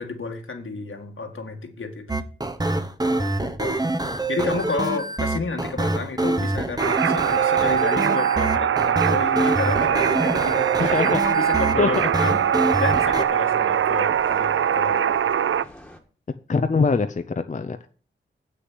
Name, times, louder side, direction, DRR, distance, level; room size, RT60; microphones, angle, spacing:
voice 1, 0.0-2.2 3.1-3.8 4.3-11.0 11.2-15.2, left 4 dB, 80° left, 4 dB, 1.9 m, -31 dB
sound 1, 2.1-13.2, right 2 dB, 20° right, 0.9 m, -25 dB
sound 2, 6.8-15.6, right 9 dB, 80° right, 0.4 m, -22 dB
sound 3, 9.0-16.0, left 1 dB, 5° left, 1.6 m, -44 dB
voice 2, 10.8-11.2 11.8-12.1 16.5-17.9, left 4 dB, 40° left, 8 dB, 0.6 m, -23 dB
8.0 x 6.6 x 7.9 m, 0.41 s
wide cardioid pair, 100°, 21 cm